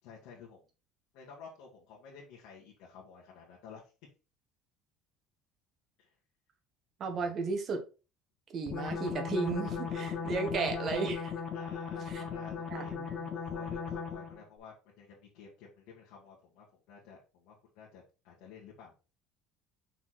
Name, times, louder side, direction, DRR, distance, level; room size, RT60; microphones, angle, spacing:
voice 1, 0.0-0.6 1.1-3.8 6.0-6.1 7.1-7.3 10.0-10.2 11.5-12.9 13.3-18.9, left 6 dB, 75° left, -4 dB, 2.3 m, -52 dB
voice 2, 7.0-7.8 8.5-11.3 12.1-12.2 12.7-13.3, right 4 dB, 35° right, 5 dB, 1.5 m, -34 dB
sound 1, 8.7-14.4, left 6 dB, 35° left, 1.3 m, -37 dB
6.0 x 4.4 x 4.4 m, 0.32 s
cardioid pair, 155°, 0 cm